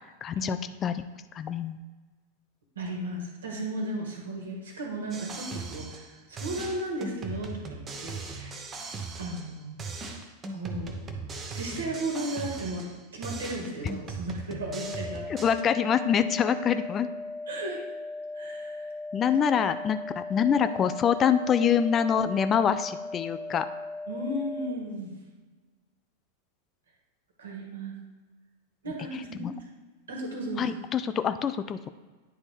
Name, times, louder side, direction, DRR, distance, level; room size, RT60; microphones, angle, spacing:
voice 1, 0.2-0.6 0.8-1.0 1.3-1.8 15.3-17.1 19.1-23.7 29.4-29.5 30.6-31.8, left 8 dB, 25° left, 11 dB, 0.3 m, -25 dB
voice 2, 2.7-8.6 9.2-9.9 10.5-11.0 11.5-15.4 16.2-16.3 17.5-17.8 18.3-18.9 19.2-19.3 24.1-25.2 27.4-28.0 28.8-29.6 30.1-30.7, right 1 dB, 65° right, 0 dB, 1.6 m, -35 dB
sound 1, 5.1-6.1 6.4-9.5 9.8-13.0 13.2-15.6, right 4 dB, 25° right, 0.8 m, -39 dB
sound 2, 14.7-24.7, left 2 dB, 45° left, 1.1 m, -38 dB
9.8 x 4.0 x 3.5 m, 1.3 s
figure-of-eight pair, 90°, 0 cm